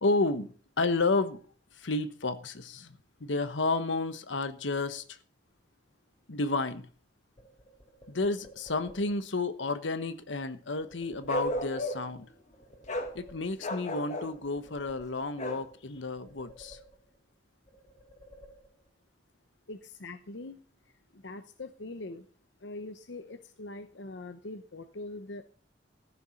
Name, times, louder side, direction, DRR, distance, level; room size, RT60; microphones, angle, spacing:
voice 1, 0.0-0.5 0.8-1.4 1.8-5.2 6.3-6.9 8.1-12.3 13.1-16.8, left 3 dB, 90° left, 1.2 m, -31 dB
sound 1, 7.4-9.3 10.8-12.2 12.5-13.9 14.2-15.6 15.9-17.3 17.7-19.0, equal, 25° left, 3.8 m, -54 dB
Bark, 11.3-12.2 12.9-13.1 13.6-14.3 15.4-15.7, left 1 dB, 40° left, 1.8 m, -33 dB
voice 2, 19.7-20.6 21.1-22.3 22.6-25.4, left 2 dB, 70° left, 0.9 m, -42 dB
15.0 x 7.0 x 5.8 m
head